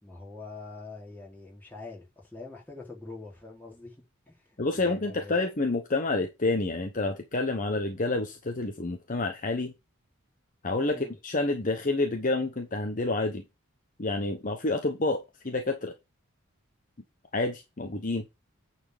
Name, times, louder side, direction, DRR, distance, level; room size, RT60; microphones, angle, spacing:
voice 1, 0.0-4.0 4.3-5.4 10.9-11.2, left 3 dB, 10° left, 3.6 m, -44 dB
voice 2, 4.6-9.7 10.6-13.4 14.0-15.9 17.3-18.2, left 2 dB, 35° left, 1.0 m, -29 dB
9.3 x 4.4 x 4.9 m
head